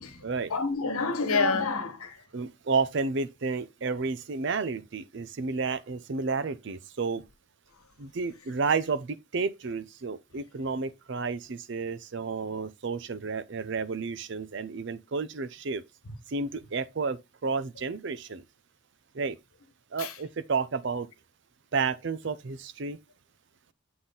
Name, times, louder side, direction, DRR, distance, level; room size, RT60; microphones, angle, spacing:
voice 1, 0.5-2.2 20.0-20.2, left 4 dB, 85° left, 1.2 m, -28 dB
voice 2, 2.3-7.2 8.0-15.8 16.3-18.4 19.1-19.4 19.9-21.1 21.7-23.0, right 4 dB, 55° right, 0.5 m, -31 dB
7.6 x 4.0 x 3.9 m
head